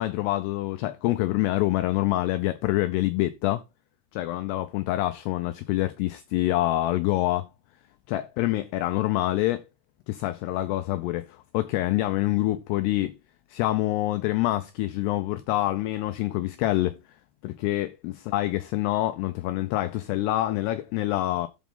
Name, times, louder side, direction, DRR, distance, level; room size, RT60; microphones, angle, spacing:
voice 1, 0.0-3.6 4.1-7.5 8.1-9.6 10.1-13.2 13.5-17.0 17.4-21.5, left 16 dB, 85° left, 2.4 m, -26 dB
13.5 x 4.7 x 3.8 m
omnidirectional pair, 5.3 m